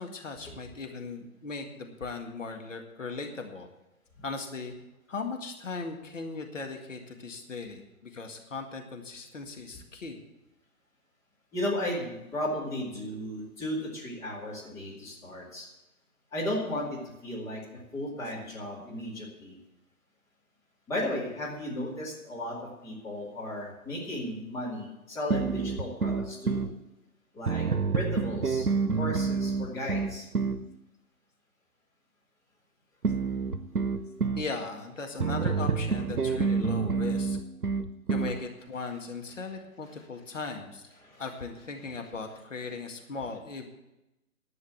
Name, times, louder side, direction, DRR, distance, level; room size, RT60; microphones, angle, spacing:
voice 1, 0.0-3.7 4.2-4.7 5.1-10.2 34.4-37.4 38.1-40.9 41.2-43.7, left 4 dB, 55° left, 3 dB, 2.0 m, -38 dB
voice 2, 11.5-15.7 16.3-19.6 20.9-22.6 22.8-26.6 27.3-27.7 27.9-30.3 41.0-41.2, left 1 dB, 5° left, -6 dB, 2.3 m, -35 dB
sound 1, 25.3-26.7 27.5-30.6 33.0-34.5 35.2-38.4, right 5 dB, 85° right, 1.0 m, -28 dB
11.5 x 8.7 x 8.6 m, 0.95 s
figure-of-eight pair, 145°, 44 cm